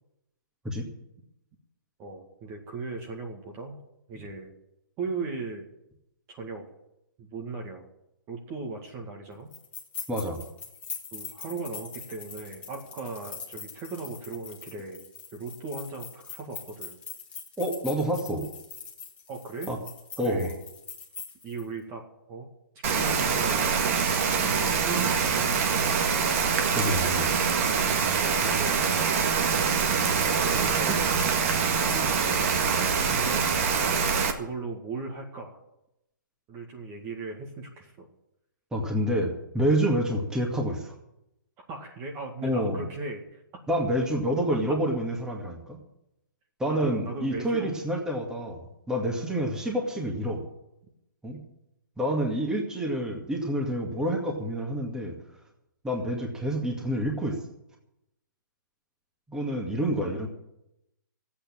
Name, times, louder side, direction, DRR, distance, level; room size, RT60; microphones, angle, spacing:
voice 1, 2.0-3.8 4.1-4.5 5.0-5.6 6.3-6.6 7.2-7.8 8.3-9.5 11.1-15.0 15.3-17.0 19.3-19.7 20.2-20.6 21.4-22.0 22.3-22.5 22.9-23.7 24.3-26.2 28.1-29.7 30.3-31.1 31.8-32.6 33.0-33.6 34.3-35.6 36.5-38.1 41.7-43.4 46.6-47.8 60.0-60.3, right 3 dB, 25° right, 1 dB, 1.9 m, -38 dB
sound 1, 9.5-21.6, left 6 dB, 10° left, 1.8 m, -42 dB
voice 2, 10.1-10.4 17.6-18.5 19.7-19.8 20.2-20.5 26.7-27.3 30.9-31.0 38.7-40.9 42.4-42.9 43.7-45.8 46.6-50.4 51.2-51.4 52.0-55.1 55.8-57.4 59.3-60.3, equal, 5° right, 0 dB, 2.2 m, -28 dB
Rain, 22.8-34.3, right 6 dB, 40° right, 1.8 m, -24 dB
13.5 x 8.7 x 8.9 m, 0.84 s
hypercardioid pair, 150°, 11 cm